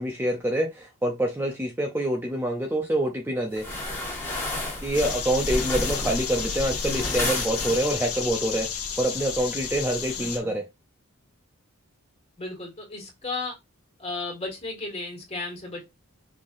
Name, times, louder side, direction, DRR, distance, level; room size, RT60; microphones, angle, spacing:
voice 1, 0.0-3.8 4.8-8.7 9.0-10.7, right 1 dB, 10° right, 0.5 m, -26 dB
sound 1, 3.5-8.2, left 1 dB, 10° left, 1.5 m, -31 dB
sound 2, 4.9-10.4, left 7 dB, 85° left, 1.2 m, -32 dB
voice 2, 10.1-10.6 12.4-13.6 14.0-15.8, left 3 dB, 25° left, 1.8 m, -34 dB
5.4 x 3.3 x 2.5 m
head